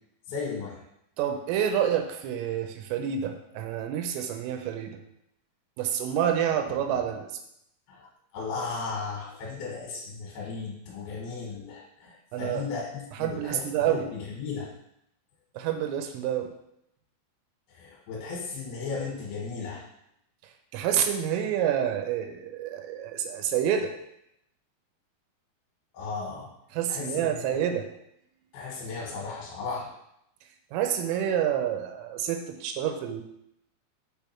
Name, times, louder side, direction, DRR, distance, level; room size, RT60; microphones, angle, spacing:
voice 1, 0.3-0.8 7.9-8.1 8.3-14.7 17.7-19.9 25.9-26.5 26.9-27.5 28.5-29.9, left 4 dB, 75° left, -2 dB, 3.1 m, -35 dB
voice 2, 1.2-5.0 5.8-7.3 12.3-12.7 13.1-14.1 15.6-16.5 20.7-23.9 26.7-27.9 30.7-33.2, right 9 dB, 85° right, 6 dB, 3.1 m, -28 dB
8.3 x 3.4 x 4.3 m, 0.79 s
omnidirectional pair, 5.8 m